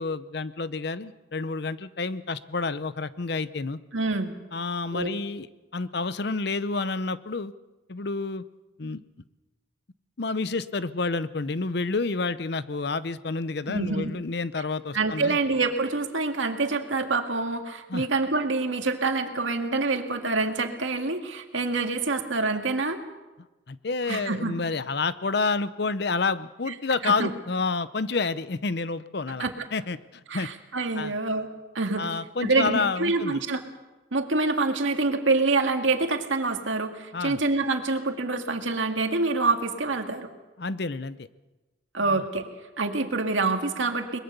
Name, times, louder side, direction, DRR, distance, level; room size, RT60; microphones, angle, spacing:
voice 1, 0.0-3.8 4.5-5.5 5.7-7.5 7.9-8.4 8.8-9.0 10.2-15.4 17.9-18.1 23.7-30.5 31.0-31.1 32.0-33.4 37.1-37.4 40.6-41.3 42.0-42.2, left 4 dB, 55° left, 15 dB, 0.7 m, -29 dB
voice 2, 3.9-4.3 4.9-5.2 13.7-14.1 14.9-23.0 24.1-24.6 27.0-27.3 29.4-29.5 30.3-31.5 31.7-32.1 32.4-33.6 34.1-40.3 41.9-42.5 42.8-44.2, right 3 dB, 85° right, 5 dB, 2.1 m, -26 dB
22.5 x 21.0 x 6.8 m, 1.1 s
head